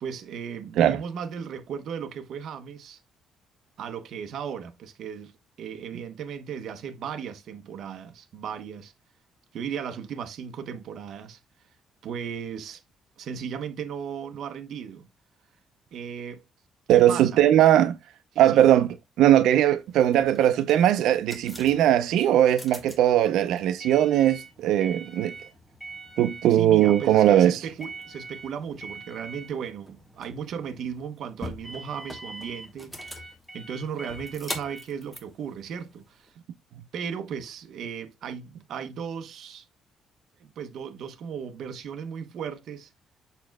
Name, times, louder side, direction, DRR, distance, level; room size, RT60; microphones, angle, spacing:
voice 1, 0.0-3.0 3.8-5.3 5.6-8.9 9.5-11.4 12.0-12.8 13.2-15.1 15.9-16.4 16.9-17.4 18.3-18.7 26.5-33.2 33.5-36.3 36.9-39.6 40.4-42.9, right 7 dB, 55° right, 0.9 m, -36 dB
voice 2, 16.9-18.0 18.4-25.3 26.2-27.6, right 11 dB, 85° right, 0.6 m, -20 dB
sound 1, 19.9-36.3, right 1 dB, 5° left, 1.1 m, -42 dB
6.8 x 6.3 x 2.2 m
cardioid pair, 170°, 0 cm